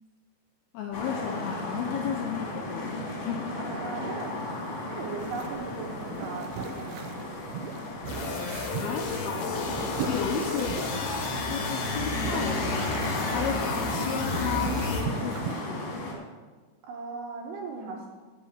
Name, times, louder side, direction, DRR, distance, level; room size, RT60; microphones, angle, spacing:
voice 1, 0.7-2.9 3.3-3.6 8.6-15.9, left 7 dB, 80° left, 2 dB, 2.3 m, -34 dB
sound 1, 0.9-16.1, left 2 dB, 45° left, 3.2 m, -34 dB
voice 2, 3.6-4.6 4.9-7.2 16.8-18.1, right 4 dB, 75° right, -2 dB, 2.9 m, -38 dB
sound 2, 5.2-15.6, right 7 dB, 90° right, 2.1 m, -39 dB
sound 3, 8.1-15.0, left 3 dB, 65° left, 2.8 m, -34 dB
8.1 x 6.8 x 8.0 m, 1.4 s
omnidirectional pair, 5.2 m